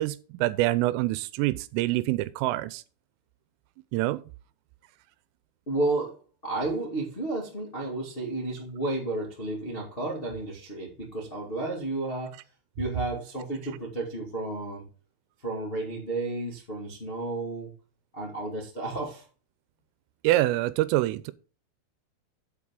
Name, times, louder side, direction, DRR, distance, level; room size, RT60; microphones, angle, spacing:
voice 1, 0.0-2.8 3.9-4.2 20.2-21.3, right 16 dB, 90° right, 3.2 m, -26 dB
voice 2, 5.6-12.4 12.8-14.8 15.4-17.7 18.1-19.2, right 2 dB, 85° left, 0.5 m, -32 dB
8.6 x 8.0 x 3.7 m
omnidirectional pair, 5.8 m